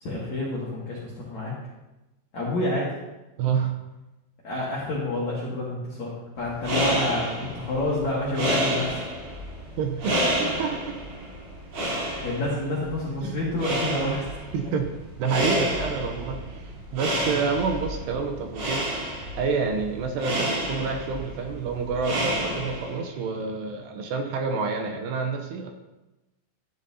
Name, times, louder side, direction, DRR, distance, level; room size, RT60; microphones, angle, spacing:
voice 1, 0.0-1.5 2.3-2.9 4.4-9.1 12.2-14.8 17.2-17.4, left 1 dB, 55° left, -6 dB, 2.1 m, -29 dB
voice 2, 3.4-3.8 9.8-11.0 13.2-13.4 14.5-14.9 15.2-18.9 19.4-25.7, right 5 dB, 80° right, 4 dB, 2.5 m, -28 dB
sound 1, 6.4-23.1, right 1 dB, 60° right, 5.4 m, -30 dB
13.0 x 10.5 x 2.8 m, 1.0 s
omnidirectional pair, 5.6 m